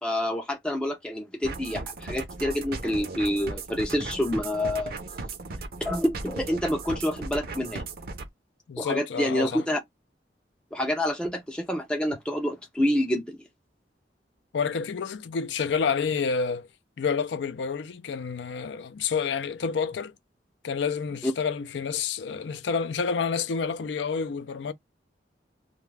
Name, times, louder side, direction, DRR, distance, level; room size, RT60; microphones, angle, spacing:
voice 1, 0.0-5.0 5.8-7.8 8.8-9.8 10.7-13.4 21.2-21.3, left 1 dB, 5° left, 0.3 m, -27 dB
sound 1, 1.4-8.3, right 3 dB, 55° right, 0.5 m, -37 dB
voice 2, 8.7-9.6 14.5-16.7 17.0-20.1 20.6-24.7, left 5 dB, 85° left, 0.4 m, -29 dB
2.3 x 2.2 x 3.1 m
head